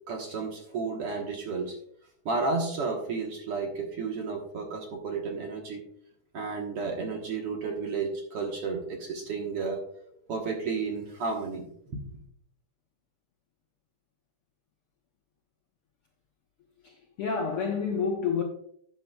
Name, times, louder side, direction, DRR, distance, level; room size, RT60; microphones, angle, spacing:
voice 1, 0.1-1.8 2.3-5.8 6.3-9.8 10.3-11.7, right 4 dB, 55° right, 1.8 m, -32 dB
voice 2, 16.8-18.4, left 5 dB, 70° left, 1.4 m, -29 dB
12.5 x 9.0 x 2.3 m
omnidirectional pair, 3.6 m